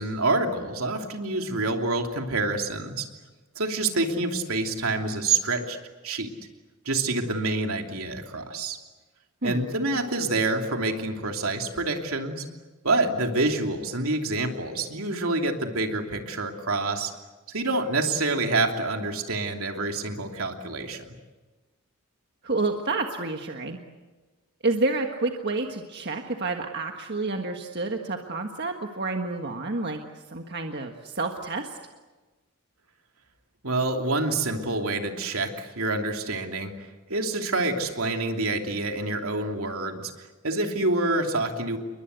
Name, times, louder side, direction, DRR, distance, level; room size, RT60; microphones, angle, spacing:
voice 1, 0.0-3.1 3.5-5.8 6.0-6.3 6.8-8.8 9.4-12.4 12.8-17.1 17.5-21.1 33.6-36.7 37.1-40.1 40.4-41.8, right 2 dB, 70° right, 3 dB, 3.0 m, -27 dB
voice 2, 22.4-23.8 24.6-30.0 30.3-31.8, right 3 dB, 50° right, 3 dB, 1.6 m, -29 dB
29.5 x 22.5 x 8.2 m, 1.3 s
head